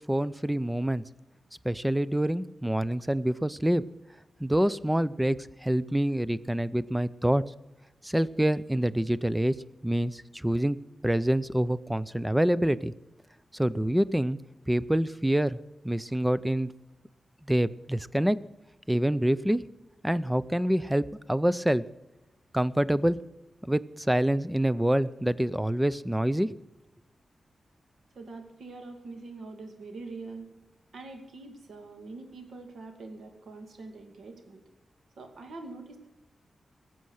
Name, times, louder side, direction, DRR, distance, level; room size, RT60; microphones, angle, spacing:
voice 1, 0.1-1.0 1.6-3.8 4.4-7.4 8.0-9.5 9.8-10.8 11.0-12.9 13.5-14.4 14.7-15.6 15.8-16.7 17.5-18.4 18.9-19.6 20.0-21.8 22.5-23.2 23.6-26.6, right 1 dB, 5° right, 17 dB, 0.5 m, -26 dB
voice 2, 28.2-30.5 30.9-34.6 35.2-36.1, right 3 dB, 80° right, 5 dB, 2.2 m, -44 dB
20.0 x 7.7 x 6.4 m, 1.0 s
wide cardioid pair, 100°, 0 cm